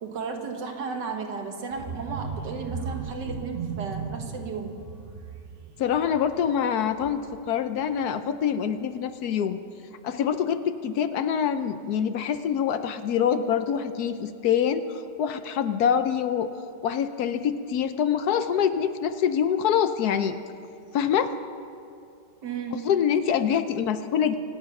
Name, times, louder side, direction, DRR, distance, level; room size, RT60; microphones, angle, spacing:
voice 1, 0.0-4.9 22.4-23.0, right 5 dB, 80° right, 3 dB, 2.1 m, -34 dB
sound 1, 1.7-7.5 7.9-8.1 8.4-8.5, right 5 dB, 45° right, 0.8 m, -37 dB
voice 2, 5.8-9.6 10.0-16.5 16.8-20.4 20.9-21.4 22.8-24.3, left 8 dB, 70° left, 10 dB, 1.1 m, -25 dB
25.0 x 9.3 x 5.9 m, 2.5 s
omnidirectional pair, 1.9 m